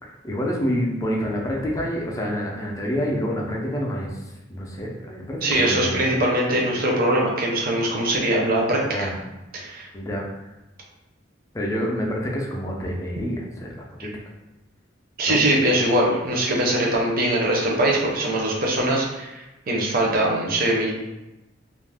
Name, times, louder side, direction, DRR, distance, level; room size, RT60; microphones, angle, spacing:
voice 1, 0.0-4.2 4.5-6.0 8.8-9.1 9.9-10.2 11.5-14.1 15.3-15.4, equal, 15° left, -2 dB, 0.4 m, -27 dB
voice 2, 5.4-9.1 9.5-9.9 14.0-14.1 15.2-20.9, right 1 dB, 50° right, -2 dB, 0.6 m, -22 dB
2.4 x 2.0 x 3.4 m, 1.0 s
head